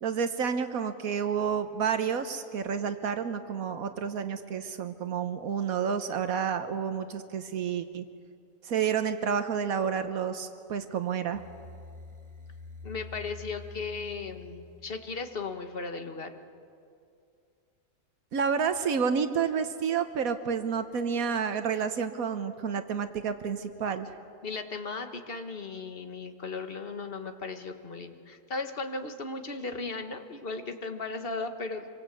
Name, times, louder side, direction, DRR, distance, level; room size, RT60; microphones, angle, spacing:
voice 1, 0.0-8.0 8.6-11.4 18.3-24.1, right 7 dB, 85° right, 8 dB, 1.4 m, -30 dB
sound 1, 11.3-15.4, left 3 dB, 20° right, 1.5 m, -47 dB
voice 2, 12.8-16.3 24.4-31.9, left 3 dB, 45° left, 6 dB, 1.7 m, -36 dB
25.5 x 24.5 x 8.4 m, 2.4 s
omnidirectional pair, 1.5 m